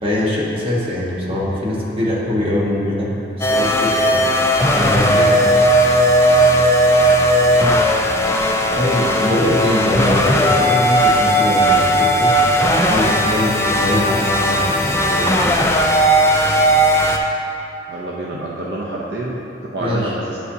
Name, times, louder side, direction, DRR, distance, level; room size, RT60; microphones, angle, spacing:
voice 1, 0.0-4.3 4.7-5.4 8.8-12.4 12.9-15.5 19.8-20.1, left 1 dB, 30° right, -6 dB, 1.3 m, -22 dB
sound 1, 3.4-17.2, equal, 15° left, 0.4 m, -16 dB
voice 2, 17.9-20.4, right 1 dB, 65° right, -4 dB, 0.7 m, -28 dB
9.8 x 5.4 x 2.7 m, 2.8 s
head